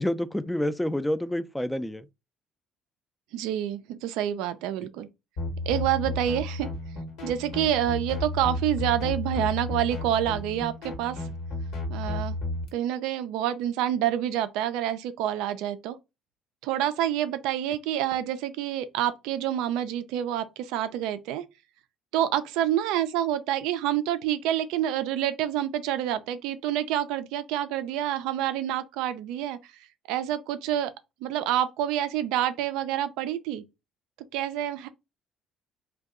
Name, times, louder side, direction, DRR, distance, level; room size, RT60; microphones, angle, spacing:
voice 1, 0.0-2.0, left 1 dB, 10° left, 0.3 m, -28 dB
voice 2, 3.3-5.1 5.7-6.7 7.2-11.2 11.9-12.4 12.7-16.0 16.6-21.4 22.1-29.6 30.1-30.9 31.2-33.6 34.3-34.9, right 11 dB, 70° right, 0.3 m, -27 dB
sound 1, 5.4-12.7, left 2 dB, 70° left, 1.1 m, -32 dB
2.6 x 2.2 x 3.5 m
hypercardioid pair, 55°, 0 cm